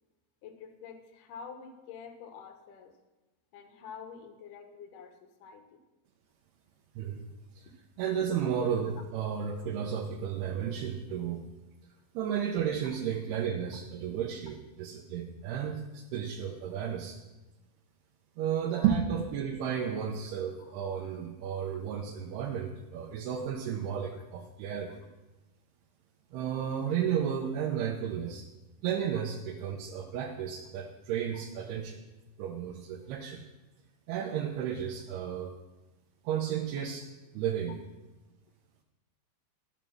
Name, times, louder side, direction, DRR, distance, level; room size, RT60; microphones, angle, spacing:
voice 1, 0.4-3.0 3.5-5.8 7.6-7.7 18.7-18.9 20.6-20.7 21.7-21.8 24.1-24.2 29.1-29.2 31.3-31.4, left 6 dB, 65° left, 6 dB, 2.4 m, -48 dB
voice 2, 8.0-11.4 12.1-17.2 18.4-25.0 26.3-28.4 28.8-32.0 32.4-33.4 34.1-35.5 36.2-37.0 37.3-37.7, right 8 dB, 90° right, 1 dB, 2.9 m, -33 dB
12.5 x 7.3 x 6.2 m, 1.1 s
omnidirectional pair, 4.4 m